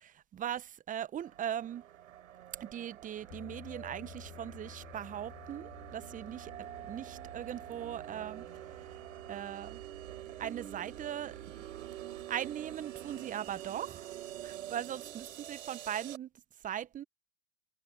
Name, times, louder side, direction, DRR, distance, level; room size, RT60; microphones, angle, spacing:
voice 1, 0.0-1.8 2.6-6.5 6.9-8.5 9.3-9.8 10.4-11.4 12.3-14.0 14.4-16.3 16.6-17.0, right 10 dB, 20° right, 1.0 m, -39 dB
sound 1, 1.2-16.2, right 12 dB, 65° right, 3.7 m, -46 dB
sound 2, 3.3-15.6, left 14 dB, 30° left, 4.4 m, -57 dB
figure-of-eight pair, 100°, 42 cm